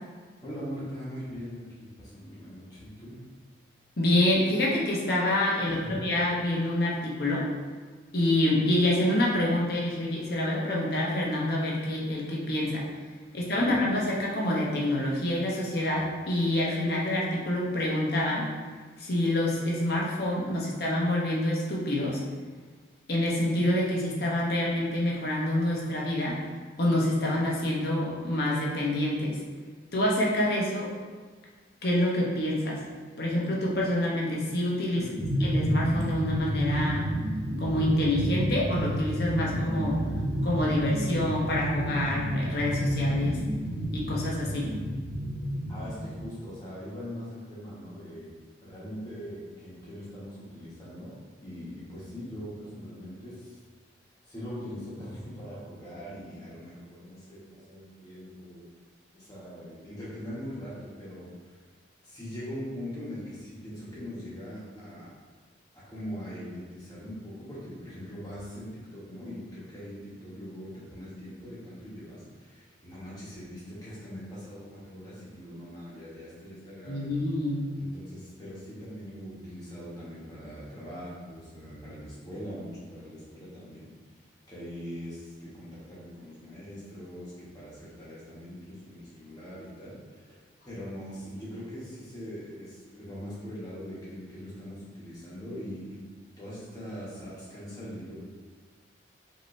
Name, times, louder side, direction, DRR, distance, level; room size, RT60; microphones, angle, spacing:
voice 1, 0.4-3.2 5.6-6.1 13.5-13.8 34.9-35.3 45.7-48.3 48.6-51.1 51.4-53.6 54.2-58.6 59.1-61.5 62.0-65.1 65.7-77.2 77.7-83.9 84.5-96.0 96.4-98.2, equal, 20° left, -8 dB, 1.4 m, -41 dB
voice 2, 4.0-7.5 8.1-12.8 13.3-18.5 19.0-22.2 23.1-26.4 26.8-29.4 29.9-30.9 31.8-32.8 33.2-35.0 35.4-37.1 37.6-40.0 40.4-43.4 43.9-44.7 76.9-77.7, left 1 dB, 55° left, -4 dB, 1.0 m, -27 dB
sound 1, 35.2-46.2, right 1 dB, 65° right, 0.6 m, -30 dB
5.2 x 3.0 x 3.2 m, 1.5 s
head